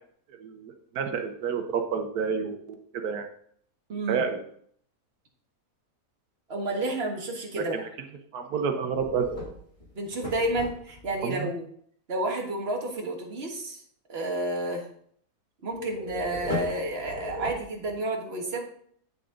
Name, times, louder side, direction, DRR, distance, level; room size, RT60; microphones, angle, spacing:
voice 1, 0.4-3.3 4.1-4.4 7.6-7.7 8.3-9.3 11.2-11.5, right 6 dB, 90° right, 6 dB, 1.4 m, -29 dB
voice 2, 3.9-4.2 6.5-7.8 10.0-11.7 12.1-13.8 14.1-14.9 15.6-18.6, right 2 dB, 45° right, 0 dB, 1.8 m, -30 dB
sound 1, 8.9-11.2 15.7-18.0, left 2 dB, 30° left, 2.7 m, -36 dB
8.8 x 6.9 x 3.8 m, 0.62 s
omnidirectional pair, 1.6 m